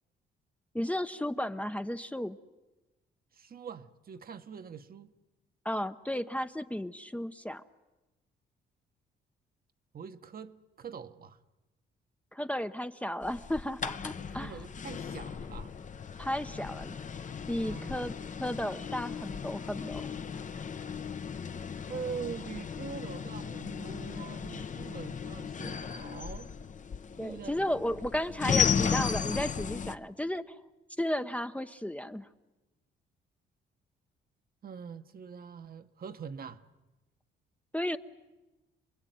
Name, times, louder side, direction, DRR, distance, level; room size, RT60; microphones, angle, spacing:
voice 1, 0.7-2.4 5.6-7.6 12.3-14.6 16.2-16.9 17.5-18.1 18.4-20.1 27.2-30.5 31.0-32.3 37.7-38.0, left 1 dB, 5° left, 0.9 m, -34 dB
voice 2, 3.3-5.1 9.9-11.4 14.4-15.7 17.6-18.0 21.9-26.5 27.2-27.7 34.6-36.6, right 6 dB, 50° right, 1.3 m, -43 dB
sound 1, 13.2-29.9, left 7 dB, 40° left, 1.0 m, -35 dB
28.0 x 21.0 x 9.4 m
cardioid pair, 90°, 20 cm